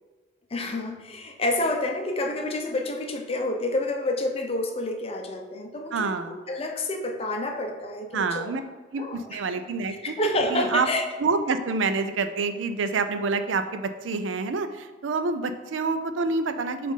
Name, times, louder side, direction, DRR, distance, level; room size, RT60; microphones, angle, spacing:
voice 1, 0.5-6.2 6.5-8.5 9.0-9.4 10.0-11.0, left 2 dB, 30° left, 4 dB, 0.6 m, -28 dB
voice 2, 5.9-6.4 8.1-8.6 8.9-10.1 10.5-10.9 11.2-16.9, right 4 dB, 90° right, 9 dB, 0.5 m, -27 dB
7.1 x 2.5 x 5.6 m, 1.3 s
head